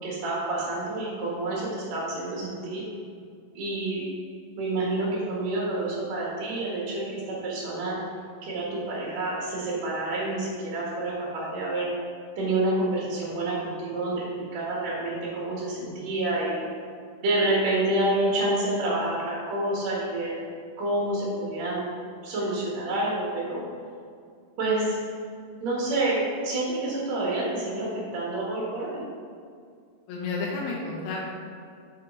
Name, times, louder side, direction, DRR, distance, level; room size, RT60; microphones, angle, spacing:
voice 1, 0.0-2.8 3.5-4.1 4.6-8.0 8.4-11.9 12.4-16.6 17.2-20.3 20.8-21.8 22.2-23.6 24.6-25.0 25.6-27.9 28.1-29.0, right 2 dB, 55° right, -6 dB, 2.6 m, -28 dB
voice 2, 30.1-31.3, left 3 dB, 85° left, -3 dB, 2.9 m, -31 dB
8.5 x 7.3 x 3.9 m, 2.3 s
omnidirectional pair, 4.3 m